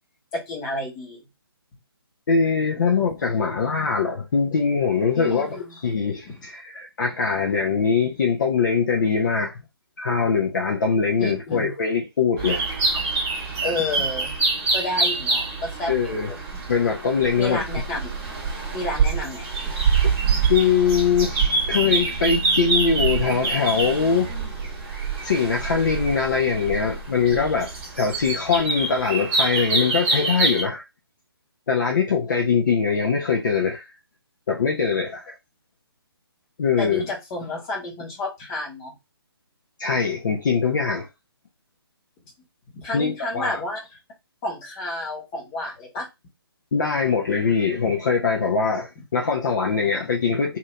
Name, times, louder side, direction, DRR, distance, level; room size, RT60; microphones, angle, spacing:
voice 1, 0.3-1.2 5.1-5.8 11.2-11.7 13.6-14.4 14.7-16.4 17.4-18.1 18.7-19.5 36.8-39.0 42.7-44.0 44.4-46.1, left 2 dB, 20° left, 1.2 m, -30 dB
voice 2, 2.3-5.5 5.8-9.5 10.0-12.6 15.9-16.3 16.7-17.6 20.0-20.1 20.5-24.4 25.2-30.8 31.7-33.8 34.5-35.3 36.6-37.0 39.8-41.1 42.9-43.6 46.7-50.6, left 5 dB, 50° left, 0.8 m, -22 dB
sound 1, 12.4-30.6, right 4 dB, 20° right, 1.1 m, -25 dB
2.8 x 2.7 x 3.2 m
figure-of-eight pair, 145°, 13 cm